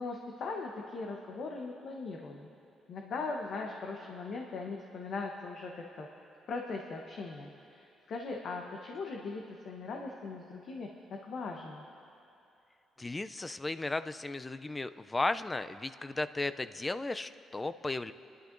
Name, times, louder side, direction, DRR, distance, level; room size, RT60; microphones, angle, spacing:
voice 1, 0.0-2.5 2.9-6.1 6.5-11.8, left 3 dB, 65° left, 1 dB, 0.9 m, -40 dB
voice 2, 13.0-18.1, left 2 dB, 20° left, 12 dB, 0.4 m, -35 dB
26.5 x 11.0 x 2.6 m, 2.7 s
cardioid pair, 90°, 0 cm